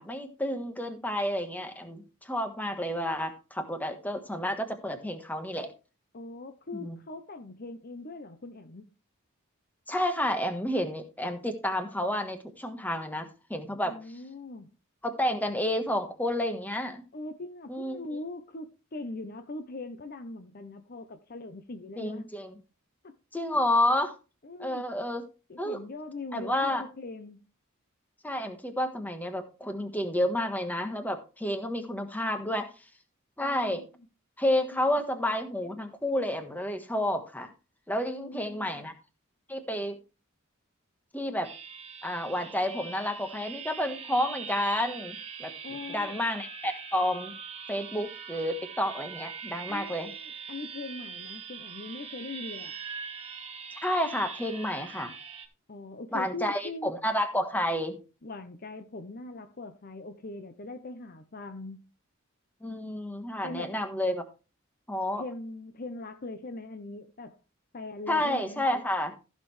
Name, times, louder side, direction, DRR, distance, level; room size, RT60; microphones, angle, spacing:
voice 1, 0.0-5.7 6.7-7.0 9.9-14.0 15.0-17.0 17.7-18.0 22.0-22.5 23.3-24.1 24.6-25.2 25.6-25.8 26.3-26.8 28.2-32.7 33.4-33.8 34.4-37.5 37.9-38.9 39.5-40.0 41.1-41.5 42.0-47.3 47.7-50.1 53.8-55.1 56.1-58.0 62.6-64.2 64.9-65.2 68.1-69.1, left 1 dB, 10° left, 1.3 m, -30 dB
voice 2, 6.1-8.9 13.8-14.7 17.1-22.3 23.0-23.1 24.4-24.9 25.5-27.4 33.4-33.9 34.7-34.8 38.1-38.9 45.6-46.1 49.7-52.7 55.7-56.9 58.2-61.8 63.4-63.8 65.2-67.4 67.7-68.6, left 2 dB, 45° left, 0.8 m, -41 dB
sound 1, 41.4-55.5, right 6 dB, 30° right, 1.2 m, -42 dB
15.0 x 6.6 x 3.2 m
head